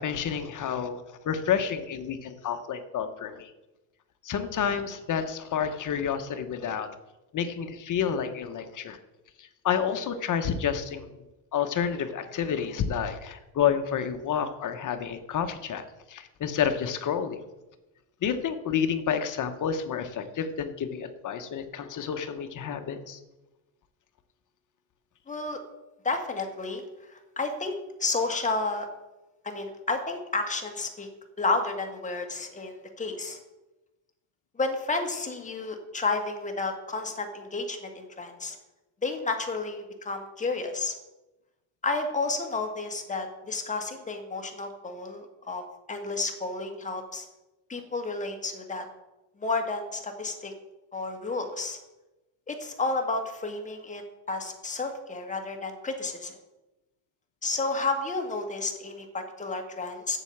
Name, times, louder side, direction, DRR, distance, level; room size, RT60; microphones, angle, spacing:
voice 1, 0.0-3.5 4.2-6.9 7.3-9.0 9.4-11.1 11.5-17.4 18.2-23.2, left 8 dB, 40° left, 8 dB, 1.1 m, -29 dB
voice 2, 25.3-25.6 26.0-26.8 27.1-27.7 28.0-28.9 29.4-31.1 31.4-33.4 34.6-38.6 39.0-40.9 41.8-45.6 45.9-47.2 47.7-48.8 49.4-50.5 50.9-51.8 52.5-54.0 54.3-56.3 57.4-60.2, left 3 dB, 15° left, 3 dB, 1.6 m, -31 dB
8.2 x 7.7 x 7.2 m, 1.0 s
cardioid pair, 120°, 46 cm